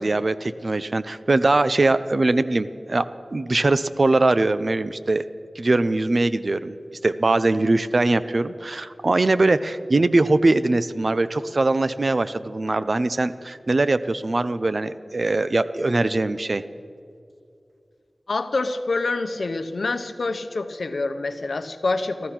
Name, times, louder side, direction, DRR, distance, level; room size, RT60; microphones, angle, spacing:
voice 1, 0.0-5.2 5.6-6.8 7.0-16.6, right 2 dB, 55° right, 13 dB, 0.5 m, -21 dB
voice 2, 18.3-22.3, left 3 dB, 80° left, 8 dB, 0.7 m, -26 dB
14.0 x 13.0 x 5.9 m, 2.5 s
wide cardioid pair, 50°, 0 cm